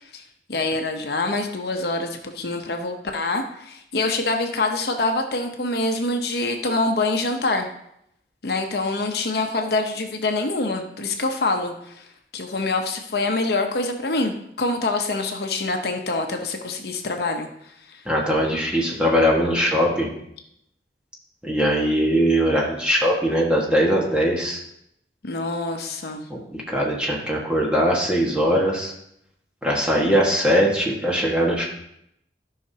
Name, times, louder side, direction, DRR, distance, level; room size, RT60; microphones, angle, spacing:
voice 1, 0.5-7.7 8.4-12.1 12.3-17.5 17.9-18.0 25.2-26.3, left 2 dB, 65° left, 4 dB, 0.8 m, -25 dB
voice 2, 18.0-20.1 21.4-24.6 26.3-28.9 29.6-31.7, equal, 5° right, -3 dB, 1.5 m, -21 dB
13.5 x 5.7 x 2.8 m, 0.76 s
head